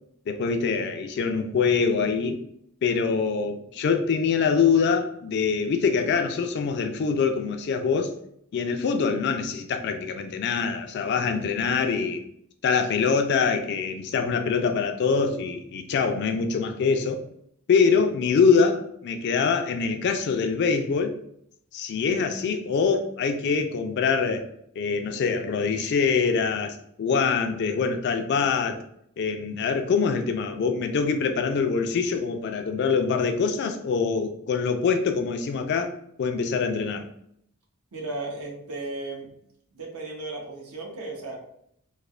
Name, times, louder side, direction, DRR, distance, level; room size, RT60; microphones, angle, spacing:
voice 1, 0.3-2.4 2.8-8.1 8.5-12.2 12.6-17.2 17.7-21.1 21.7-24.5 24.8-28.8 29.2-37.1, left 5 dB, 50° left, 6 dB, 0.3 m, -24 dB
voice 2, 37.9-39.3 39.7-41.3, right 2 dB, 85° right, -1 dB, 0.8 m, -35 dB
3.2 x 2.0 x 2.3 m, 0.71 s
head